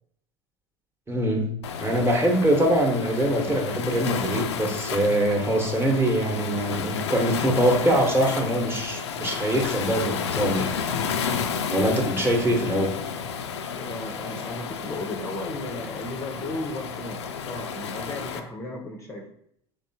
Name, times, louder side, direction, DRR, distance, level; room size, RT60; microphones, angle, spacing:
voice 1, 1.1-1.5 1.8-10.8 11.7-12.9, right 1 dB, 15° right, 1 dB, 0.9 m, -23 dB
Waves surf, 1.6-18.4, left 6 dB, 75° left, 0.4 m, -31 dB
voice 2, 13.7-19.3, left 2 dB, 20° left, 0 dB, 0.6 m, -35 dB
3.7 x 3.4 x 2.7 m, 0.68 s
figure-of-eight pair, 75°, 14 cm